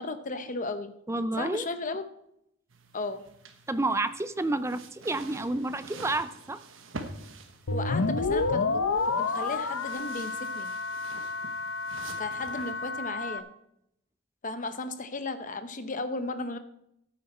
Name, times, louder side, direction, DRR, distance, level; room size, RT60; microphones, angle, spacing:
voice 1, 0.0-0.9 1.4-2.0 2.9-3.3 7.7-10.7 12.2-13.5 14.4-16.6, left 3 dB, 35° left, 10 dB, 0.8 m, -35 dB
voice 2, 1.1-1.7 3.7-6.6 8.0-8.1, right 2 dB, 15° right, 13 dB, 0.4 m, -30 dB
sound 1, 2.7-13.1, right 3 dB, 65° right, 1.2 m, -47 dB
FM sine sweep, 7.7-13.4, left 3 dB, 70° left, 0.8 m, -30 dB
14.0 x 8.5 x 4.3 m, 0.79 s
head